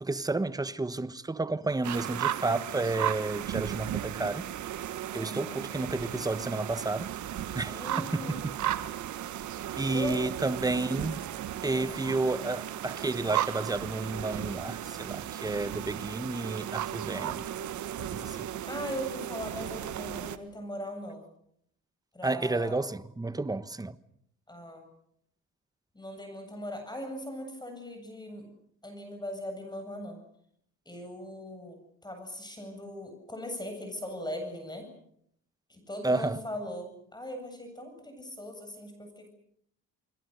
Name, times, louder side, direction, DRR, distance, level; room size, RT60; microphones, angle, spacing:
voice 1, 0.0-4.4 5.1-7.1 7.5-8.5 9.8-11.2 11.6-17.5 18.0-18.5 22.2-24.0 36.0-36.4, right 2 dB, 10° right, 1.2 m, -31 dB
sound 1, 1.8-20.4, right 11 dB, 75° right, 1.6 m, -35 dB
voice 2, 5.1-5.6 7.7-8.4 9.9-10.2 11.6-11.9 18.7-21.3 22.1-22.8 24.5-24.9 25.9-28.5 28.8-30.2 30.8-34.9 35.7-39.3, equal, 15° left, 7.9 m, -39 dB
30.0 x 22.0 x 6.7 m
cardioid pair, 90°, 30 cm